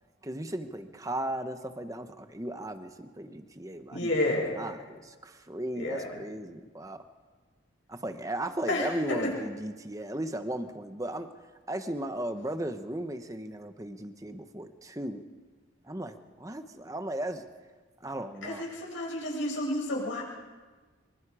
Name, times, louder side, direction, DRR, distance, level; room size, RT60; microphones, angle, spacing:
voice 1, 0.2-4.1 4.5-7.0 7.9-11.3 11.7-15.2 15.9-17.4 18.0-18.6, right 1 dB, 15° right, 8 dB, 1.1 m, -36 dB
voice 2, 3.9-4.7 5.8-6.0 8.7-9.3 18.4-20.2, left 1 dB, 70° left, -2 dB, 7.4 m, -30 dB
25.5 x 24.5 x 5.0 m, 1.4 s
head